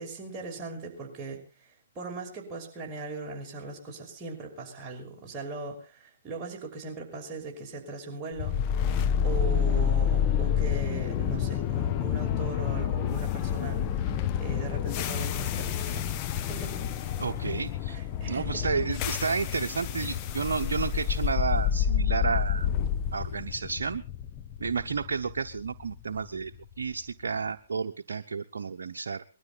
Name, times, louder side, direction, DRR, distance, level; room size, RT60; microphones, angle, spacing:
voice 1, 0.0-1.4 2.0-8.6 9.2-16.8 17.9-18.4 20.0-20.1, right 3 dB, 20° right, -1 dB, 5.6 m, -39 dB
sound 1, 8.4-26.5, left 8 dB, 30° left, 1.1 m, -29 dB
voice 2, 17.2-18.0 18.2-22.7 23.1-24.0 24.6-26.5 26.8-29.2, right 5 dB, 70° right, 6 dB, 0.8 m, -31 dB
21.5 x 12.5 x 4.1 m, 0.34 s
hypercardioid pair, 130°, 0 cm